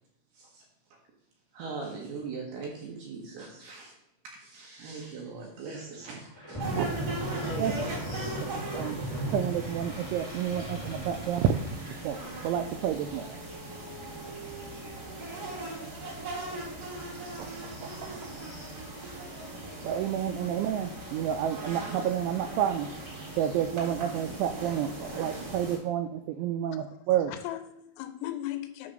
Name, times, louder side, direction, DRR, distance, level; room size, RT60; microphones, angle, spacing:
voice 1, 0.3-0.6 1.5-3.9 4.2-6.6 7.4-7.9, right 4 dB, 70° right, -1 dB, 2.6 m, -40 dB
sound 1, 6.4-16.9, right 1 dB, 30° left, 0.4 m, -39 dB
sound 2, 6.6-25.8, right 2 dB, 40° right, 2.5 m, -40 dB
voice 2, 8.4-9.0 9.3-11.7 12.0-12.2 12.4-13.4 17.4-18.3 19.8-22.9 23.4-27.3, right 10 dB, 90° right, 8 dB, 2.7 m, -30 dB
voice 3, 27.3-28.9, left 13 dB, 85° left, 9 dB, 3.3 m, -37 dB
10.0 x 3.4 x 6.4 m, 0.78 s
omnidirectional pair, 5.9 m